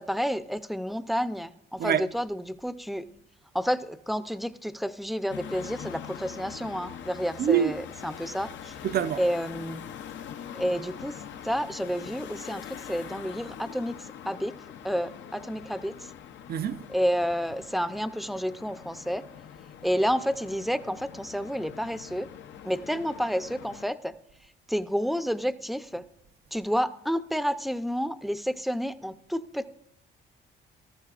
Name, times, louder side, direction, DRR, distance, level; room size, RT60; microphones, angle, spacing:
voice 1, 0.0-3.1 3.5-8.7 9.2-9.8 10.5-14.6 14.8-16.1 16.9-19.3 19.8-22.3 22.6-24.1 24.7-26.0 26.5-29.7, equal, ahead, 0.5 m, -30 dB
sound 1, 5.3-23.8, left 9 dB, 70° left, 0.7 m, -43 dB
voice 2, 7.4-7.7 8.8-9.2 16.5-16.9, right 8 dB, 50° right, 0.5 m, -25 dB
17.0 x 13.5 x 2.5 m
cardioid pair, 90°, 20 cm